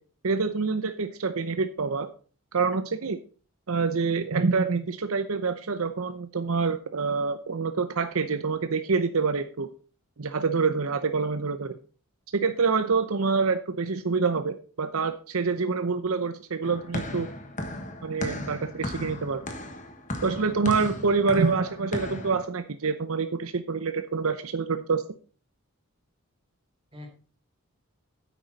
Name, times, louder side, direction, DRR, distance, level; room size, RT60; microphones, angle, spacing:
voice 1, 0.2-2.1 2.5-3.2 3.7-9.7 10.2-11.8 12.3-17.3 18.0-19.4 20.2-25.0, right 4 dB, 75° right, 9 dB, 0.7 m, -26 dB
sound 1, 16.6-22.5, left 1 dB, 35° left, 1.5 m, -36 dB
voice 2, 21.2-21.6 26.9-27.1, left 2 dB, 25° right, 1 dB, 3.4 m, -47 dB
9.9 x 8.4 x 4.1 m, 0.39 s
head